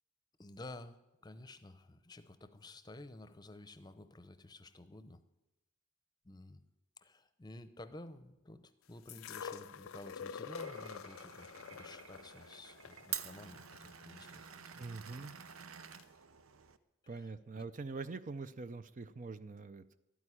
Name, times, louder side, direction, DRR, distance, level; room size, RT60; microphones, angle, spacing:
voice 1, 0.4-5.2 6.2-6.6 7.0-14.4 14.7-14.8 17.0-17.7, left 2 dB, 20° left, 12 dB, 0.7 m, -52 dB
sound 1, 9.1-15.1 16.0-16.1, left 6 dB, 80° left, 0.5 m, -48 dB
Glass, 10.5-16.8, right 9 dB, 80° right, 0.8 m, -48 dB
voice 2, 14.8-15.3 17.1-20.0, right 3 dB, 40° right, 13 dB, 0.5 m, -44 dB
12.5 x 9.3 x 9.9 m, 0.96 s
head